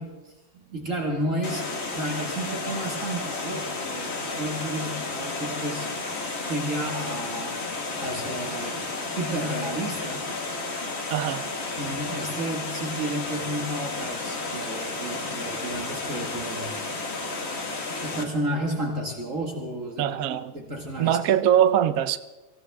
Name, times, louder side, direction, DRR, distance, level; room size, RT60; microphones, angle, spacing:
voice 1, 0.0-5.9 6.4-7.7 7.9-10.3 11.8-16.7 18.0-21.2, right 1 dB, 45° right, 1 dB, 2.2 m, -32 dB
Water, 1.4-18.2, left 3 dB, 40° left, 1.7 m, -32 dB
voice 2, 11.1-11.4 20.0-20.5 21.0-22.2, right 10 dB, 65° right, 12 dB, 1.0 m, -22 dB
25.0 x 16.5 x 3.5 m, 1.2 s
omnidirectional pair, 1.9 m